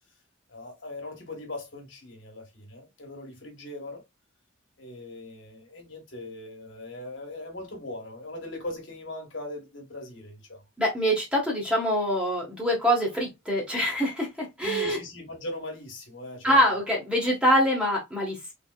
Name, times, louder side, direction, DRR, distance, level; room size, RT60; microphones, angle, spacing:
voice 1, 0.5-4.0 4.8-10.6 14.6-16.7, left 1 dB, 65° left, 1.4 m, -39 dB
voice 2, 10.8-15.0 16.4-18.5, equal, 5° right, 1.2 m, -24 dB
3.5 x 3.5 x 2.3 m
head